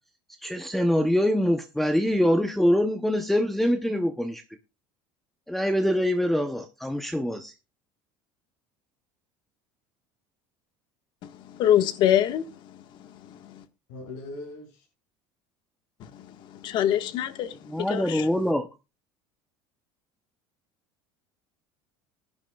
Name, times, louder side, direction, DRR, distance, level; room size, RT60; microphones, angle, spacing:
voice 1, 0.4-4.4 5.5-7.5 17.7-18.7, equal, ahead, 0.8 m, -24 dB
voice 2, 11.6-12.4 16.6-17.5 17.8-18.3, left 11 dB, 50° left, 1.5 m, -23 dB
voice 3, 13.9-14.8 18.1-18.5, left 2 dB, 90° left, 6.1 m, -41 dB
20.5 x 10.5 x 2.3 m
cardioid pair, 145°, 10 cm